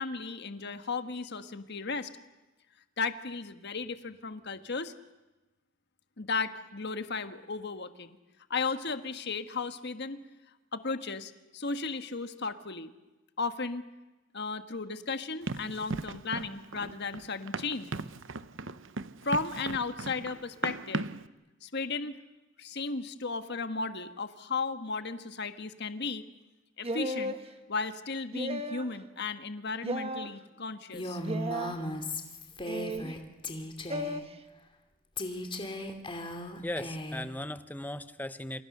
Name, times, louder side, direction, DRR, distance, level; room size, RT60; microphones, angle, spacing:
voice 1, 0.0-2.1 3.0-4.9 6.2-8.2 8.5-10.2 10.7-12.9 13.4-13.8 14.3-17.9 19.2-21.1 21.6-22.2 22.6-26.2 26.8-27.3 27.7-31.2, left 4 dB, 55° left, 9 dB, 1.5 m, -35 dB
Run, 15.5-21.3, right 3 dB, 65° right, 0.9 m, -37 dB
sound 1, 26.8-27.4 28.3-28.9 29.8-30.3 31.2-31.8 32.7-33.1 33.9-34.2, right 1 dB, 30° right, 1.5 m, -34 dB
Female speech woman speaking, 30.9-33.2 33.4-34.2 35.2-37.3, left 1 dB, 25° left, 2.7 m, -37 dB
voice 2, 36.6-38.6, left 1 dB, 10° left, 12 dB, 0.9 m, -37 dB
28.0 x 28.0 x 6.7 m, 1.1 s
head